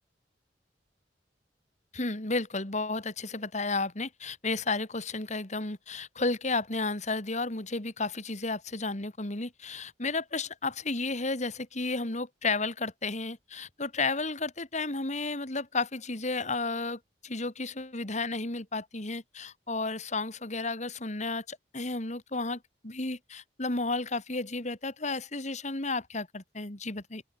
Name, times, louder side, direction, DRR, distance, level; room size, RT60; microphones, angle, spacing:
voice 1, 1.9-27.2, left 3 dB, 40° left, 2.7 m, -32 dB
open air
head